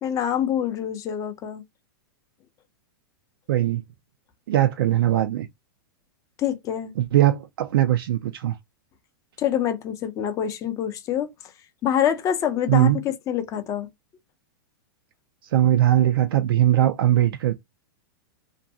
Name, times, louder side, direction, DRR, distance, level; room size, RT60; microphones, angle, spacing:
voice 1, 0.0-1.6 6.4-6.9 9.4-11.5 11.8-13.9, left 9 dB, 25° left, 0.5 m, -26 dB
voice 2, 3.5-3.8 4.5-5.5 7.0-8.6 12.7-13.0 15.4-17.5, right 12 dB, 75° right, 0.4 m, -20 dB
2.5 x 2.2 x 2.7 m
hypercardioid pair, 130°, 12 cm